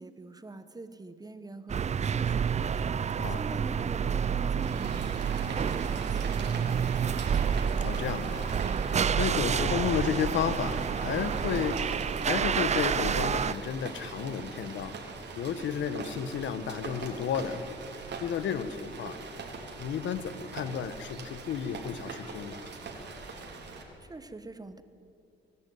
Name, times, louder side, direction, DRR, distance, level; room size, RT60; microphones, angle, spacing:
voice 1, 0.0-7.5 23.7-24.8, right 3 dB, 20° right, 11 dB, 1.2 m, -45 dB
sound 1, 1.7-13.5, right 7 dB, 35° right, 0.5 m, -29 dB
Rain, 4.6-23.8, right 4 dB, 60° right, 3.7 m, -42 dB
voice 2, 7.8-11.9 12.2-15.0 15.4-17.6 18.2-19.2 19.8-22.7, left 8 dB, 70° left, 12 dB, 1.2 m, -32 dB
24.0 x 11.5 x 9.5 m, 2.6 s
cardioid pair, 90°, 20 cm